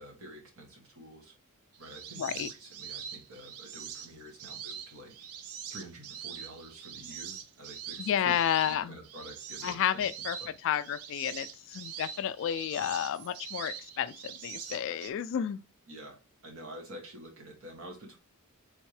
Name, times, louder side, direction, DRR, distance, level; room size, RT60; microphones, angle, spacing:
voice 1, 0.0-1.3 1.8-5.2 5.7-10.1 10.4-10.5 15.9-18.2, right 1 dB, 70° right, 1.4 m, -48 dB
sound 1, 1.7-15.1, right 8 dB, 85° right, 0.5 m, -44 dB
voice 2, 2.2-2.5 8.0-9.0 9.6-10.4 10.6-15.6, left 9 dB, 60° left, 0.3 m, -31 dB
3.5 x 3.5 x 3.2 m
head